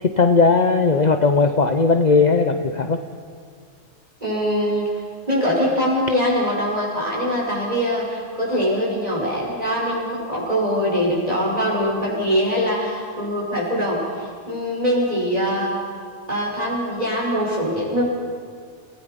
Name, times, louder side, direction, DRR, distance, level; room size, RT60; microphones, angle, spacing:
voice 1, 0.0-3.0, left 4 dB, 40° left, 7 dB, 0.8 m, -17 dB
voice 2, 4.2-4.9 5.3-15.7 16.3-18.2, equal, 30° right, -4 dB, 6.2 m, -23 dB
29.5 x 17.5 x 5.3 m, 2.1 s
omnidirectional pair, 1.3 m